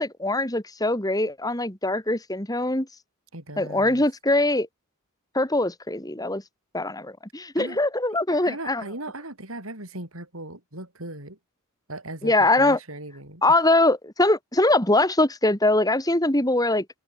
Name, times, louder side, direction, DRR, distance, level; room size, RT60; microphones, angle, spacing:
voice 1, 0.0-2.9 3.6-4.7 5.3-6.4 6.7-8.8 12.2-12.8 13.4-16.9, left 2 dB, 15° left, 2.9 m, -22 dB
voice 2, 3.3-4.0 7.6-7.8 8.3-11.4 11.9-13.4, right 2 dB, 75° right, 7.8 m, -38 dB
head